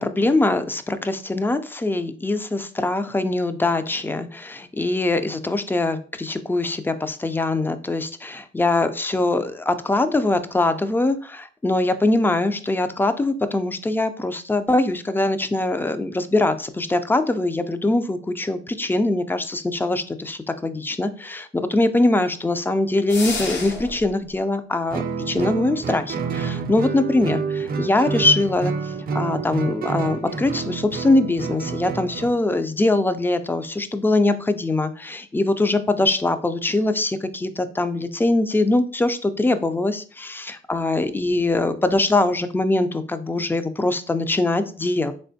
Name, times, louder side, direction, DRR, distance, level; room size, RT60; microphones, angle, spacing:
voice 1, 0.0-45.1, left 2 dB, 10° left, 11 dB, 0.3 m, -22 dB
sound 1, 23.1-24.1, left 4 dB, 65° left, 0.8 m, -30 dB
Guitar, 24.9-32.4, right 5 dB, 50° right, 0.5 m, -28 dB
3.6 x 3.2 x 2.7 m, 0.41 s
cardioid pair, 90°, 20 cm